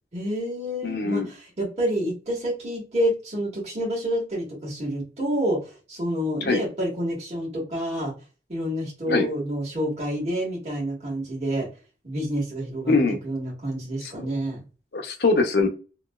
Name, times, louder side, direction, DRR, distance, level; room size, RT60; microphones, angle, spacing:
voice 1, 0.1-8.1 8.5-11.7 12.0-12.9 13.2-14.6, equal, 35° right, -6 dB, 1.4 m, -28 dB
voice 2, 0.8-1.3 6.5-6.6 9.1-9.3 12.9-13.2 14.0-14.3 14.9-15.7, left 3 dB, 65° left, 6 dB, 0.6 m, -22 dB
3.0 x 2.7 x 2.2 m, 0.33 s
head